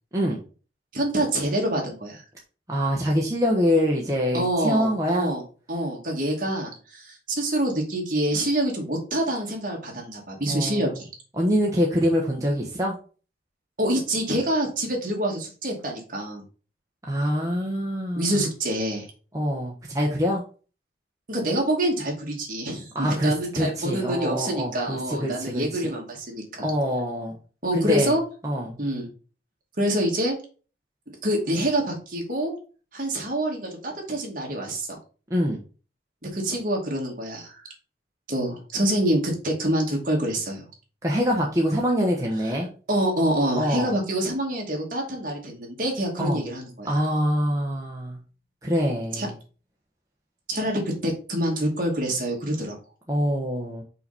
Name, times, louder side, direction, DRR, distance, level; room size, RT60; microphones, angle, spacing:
voice 1, 0.9-2.2 4.3-5.4 5.7-11.1 13.8-16.4 18.2-19.1 21.3-26.7 27.6-28.2 28.8-29.1 29.8-30.4 31.2-32.5 32.9-35.0 36.2-37.6 38.3-40.6 42.9-47.0 49.1-49.3 50.5-52.8, right 1 dB, 50° right, 0 dB, 2.3 m, -26 dB
voice 2, 2.7-5.3 10.5-11.0 11.3-13.0 17.1-18.4 19.3-20.4 22.9-25.9 26.6-27.4 27.7-28.1 28.4-28.8 35.3-35.6 41.0-42.7 43.6-43.9 46.2-46.4 46.8-48.2 48.6-49.3 53.1-53.8, equal, 20° right, -2 dB, 1.2 m, -25 dB
5.6 x 5.2 x 4.2 m, 0.36 s
head